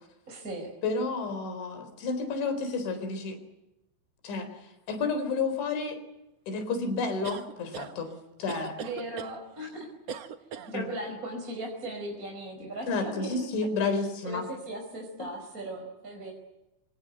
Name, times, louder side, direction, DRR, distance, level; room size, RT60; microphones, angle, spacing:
voice 1, 0.3-0.7 8.8-9.7 10.7-13.4 13.8-16.3, right 1 dB, 20° right, 1 dB, 5.2 m, -38 dB
voice 2, 0.8-3.4 4.2-4.5 4.9-6.0 6.5-8.1 8.4-8.8 10.7-10.8 12.9-14.4, left 4 dB, 75° left, 9 dB, 6.5 m, -30 dB
sound 1, 7.2-7.9 8.5-9.3 10.1-10.7, right 7 dB, 85° right, 1.4 m, -39 dB
27.0 x 26.0 x 8.1 m, 0.92 s
omnidirectional pair, 5.3 m